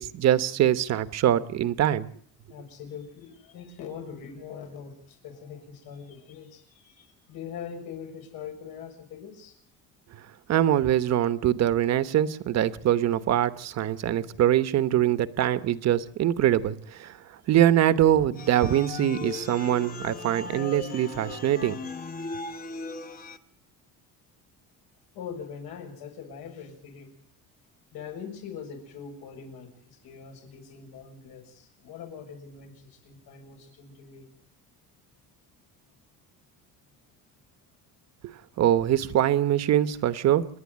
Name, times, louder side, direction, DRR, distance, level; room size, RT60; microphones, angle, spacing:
voice 1, 0.0-2.1 10.5-17.2 17.5-21.8 38.2-40.5, right 11 dB, 45° right, 12 dB, 1.1 m, -23 dB
voice 2, 2.5-9.6 25.1-27.1 27.9-34.3, left 7 dB, 80° left, 3 dB, 6.9 m, -42 dB
sound 1, 18.4-23.4, left 3 dB, 25° left, 1.1 m, -37 dB
29.0 x 11.0 x 8.6 m, 0.63 s
cardioid pair, 165°, 36 cm